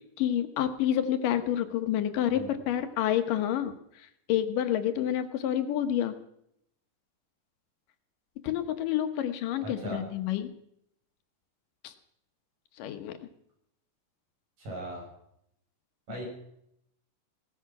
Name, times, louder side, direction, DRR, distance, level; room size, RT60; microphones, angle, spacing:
voice 1, 0.2-3.7 4.3-6.1 8.4-10.5 11.8-11.9 12.8-13.1, left 11 dB, 85° left, 8 dB, 2.8 m, -28 dB
voice 2, 9.6-10.0 14.6-15.0 16.1-16.2, right 1 dB, 85° right, -2 dB, 8.6 m, -38 dB
18.0 x 13.5 x 6.0 m, 0.74 s
omnidirectional pair, 3.7 m